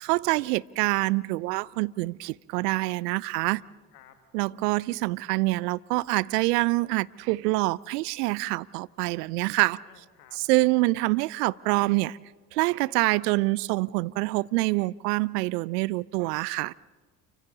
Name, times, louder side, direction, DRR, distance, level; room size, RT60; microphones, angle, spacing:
voice 1, 0.0-3.6 4.3-9.8 10.5-12.2 12.5-16.7, right 21 dB, 75° right, 0.5 m, -26 dB
voice 2, 3.2-4.2 9.8-10.4, left 10 dB, 85° left, 2.1 m, -56 dB
29.5 x 24.5 x 4.0 m
hypercardioid pair, 60°, 48 cm